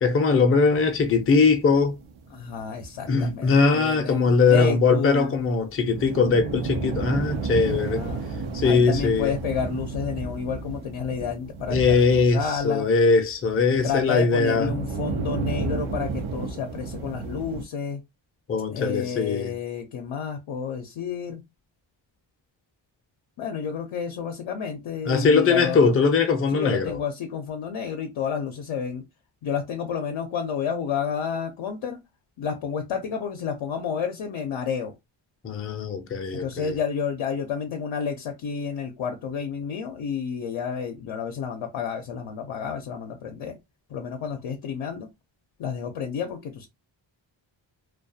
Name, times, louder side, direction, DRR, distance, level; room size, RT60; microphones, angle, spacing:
voice 1, 0.0-2.0 3.1-8.0 8.5-9.3 11.7-14.7 18.5-19.6 25.0-27.0 35.4-36.8, left 4 dB, 30° left, 0.5 m, -21 dB
sound 1, 0.7-3.7 4.1-4.2 4.4-4.5 4.7-4.8 5.3-13.0 13.3-17.6, right 4 dB, 90° right, 0.6 m, -33 dB
voice 2, 2.3-5.3 7.7-8.2 8.6-12.9 13.8-18.0 18.7-21.4 23.4-26.0 26.5-29.0 29.4-32.0 32.4-34.9 36.3-43.6 43.9-45.1 45.6-46.7, left 7 dB, 80° left, 0.6 m, -30 dB
2.3 x 2.3 x 2.6 m
cardioid pair, 80°, 47 cm